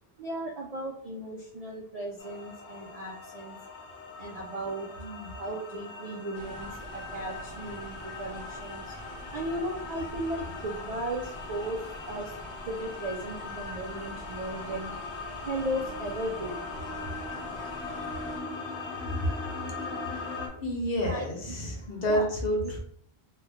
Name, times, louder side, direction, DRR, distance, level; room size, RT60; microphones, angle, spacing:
voice 1, 0.2-3.6 4.2-4.9 5.4-12.4 12.6-15.0 15.4-16.7 20.0-20.2 21.1-22.3, right 1 dB, 60° right, 0 dB, 0.4 m, -36 dB
sound 1, 2.2-20.5, left 4 dB, 80° left, 1.2 m, -40 dB
voice 2, 5.0-5.3 17.3-17.4 19.2-19.3 20.6-22.8, equal, 60° left, 0 dB, 1.0 m, -29 dB
sound 2, 6.3-18.4, equal, 35° left, 0.5 m, -45 dB
3.2 x 2.2 x 3.4 m, 0.67 s
omnidirectional pair, 1.1 m